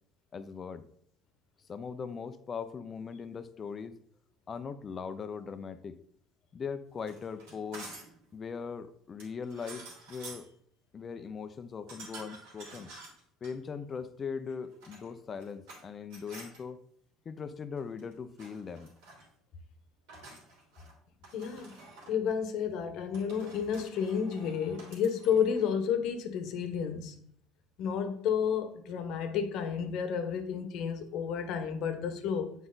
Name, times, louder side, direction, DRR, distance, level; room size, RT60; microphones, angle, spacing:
voice 1, 0.3-0.8 1.7-4.0 4.5-6.0 6.5-7.9 8.3-10.5 10.9-12.9 13.4-16.8 17.2-18.9, left 6 dB, 35° left, 11 dB, 0.7 m, -40 dB
sound 1, 7.0-8.2 9.2-10.5 11.9-13.5 14.6-15.8 16.1-16.6 17.8-18.1 18.4-19.3 20.1-20.9 21.2-22.2 23.1-25.7, right 3 dB, 80° right, 3.2 m, -50 dB
voice 2, 21.3-21.8 22.1-27.2 27.8-32.5, left 7 dB, 65° left, 7 dB, 1.1 m, -31 dB
7.7 x 4.6 x 4.0 m, 0.66 s
supercardioid pair, 90°, 0 cm